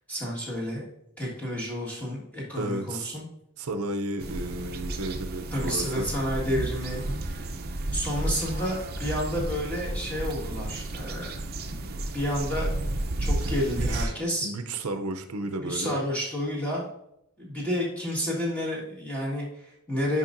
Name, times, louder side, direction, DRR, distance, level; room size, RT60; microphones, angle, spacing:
voice 1, 0.1-0.8 1.2-3.2 5.5-7.1 7.9-11.4 12.1-12.7 13.2-14.5 15.6-16.9 17.4-20.2, equal, 5° left, -5 dB, 1.7 m, -30 dB
voice 2, 2.5-3.2 3.6-6.1 13.4-13.5 13.8-14.1 14.4-16.0, right 2 dB, 85° right, 7 dB, 0.6 m, -33 dB
sound 1, 4.2-14.0, right 1 dB, 45° right, 0.6 m, -32 dB
10.0 x 5.4 x 2.6 m, 0.79 s
head